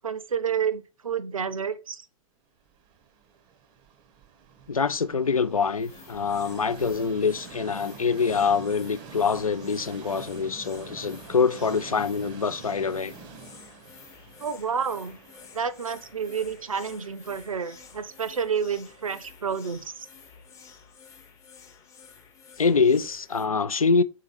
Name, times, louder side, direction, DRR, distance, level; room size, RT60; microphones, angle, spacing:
voice 1, 0.0-2.0 14.4-15.2 15.5-20.1, right 7 dB, 75° right, 0.6 m, -30 dB
Train, 2.7-20.7, right 5 dB, 25° right, 0.5 m, -47 dB
voice 2, 4.7-13.1 22.6-24.0, left 5 dB, 85° left, 0.4 m, -25 dB
sound 1, 5.8-23.5, left 6 dB, 15° left, 0.6 m, -51 dB
3.6 x 2.8 x 4.8 m
figure-of-eight pair, 110°, 18 cm